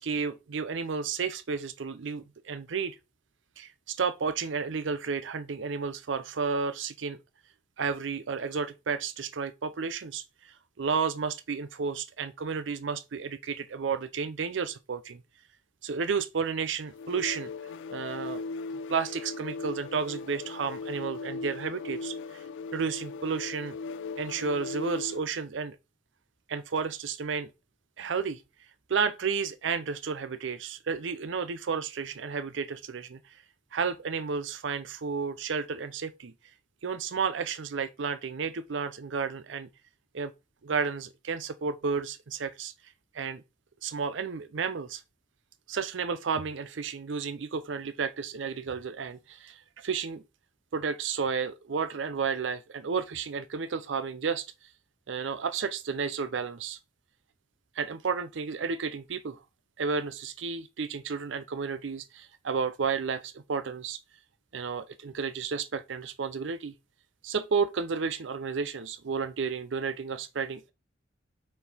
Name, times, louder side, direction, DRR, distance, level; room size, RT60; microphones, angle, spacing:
voice 1, 0.0-3.0 3.6-7.2 7.8-15.2 15.8-17.5 17.9-18.4 18.9-22.4 22.7-23.8 24.2-25.8 26.5-27.5 28.0-28.4 28.9-33.2 33.7-36.3 36.8-39.7 40.1-40.3 40.6-42.7 43.1-43.4 43.8-45.0 45.7-50.2 50.7-54.4 55.1-56.8 57.8-59.4 59.8-64.0 64.5-66.7 67.2-70.7, right 5 dB, 80° right, 0.5 m, -32 dB
sound 1, 16.9-25.3, left 4 dB, 80° left, 0.3 m, -38 dB
5.7 x 4.5 x 4.0 m
head